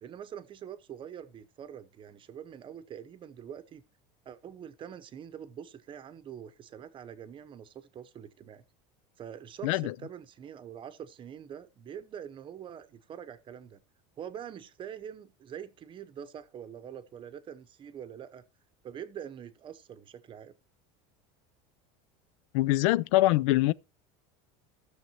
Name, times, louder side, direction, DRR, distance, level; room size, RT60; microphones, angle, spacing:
voice 1, 0.0-3.8 4.2-8.6 9.2-13.8 14.2-18.4 18.8-20.5, right 9 dB, 30° right, 0.8 m, -44 dB
voice 2, 9.6-9.9 22.5-23.7, left 17 dB, 75° left, 0.4 m, -24 dB
16.0 x 6.4 x 2.9 m
supercardioid pair, 135°, 16 cm